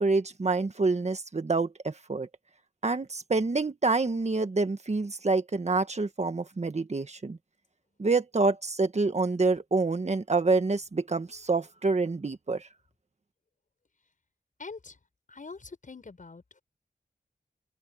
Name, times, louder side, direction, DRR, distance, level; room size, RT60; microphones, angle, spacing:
voice 1, 0.0-2.3 2.8-7.4 8.0-12.7, right 3 dB, 45° right, 1.6 m, -27 dB
voice 2, 14.6-15.0 15.3-16.6, left 4 dB, 55° left, 7.1 m, -44 dB
open air
wide cardioid pair, 90°, 16 cm